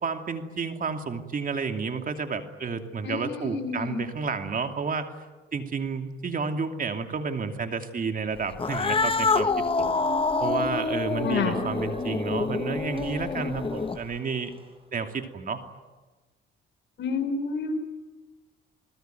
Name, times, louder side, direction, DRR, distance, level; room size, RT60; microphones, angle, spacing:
voice 1, 0.0-5.1 5.5-10.0 10.4-14.5 14.9-15.6, right 5 dB, 45° right, 6 dB, 2.7 m, -31 dB
voice 2, 3.0-4.0 11.2-11.6 17.0-17.7, left 5 dB, 65° left, 8 dB, 4.4 m, -29 dB
Cat, 8.5-14.2, left 4 dB, 25° left, 1.1 m, -27 dB
Squeak, 8.7-14.6, right 1 dB, 25° right, 6.5 m, -40 dB
28.5 x 20.5 x 9.3 m, 1.2 s
cardioid pair, 90°, 20 cm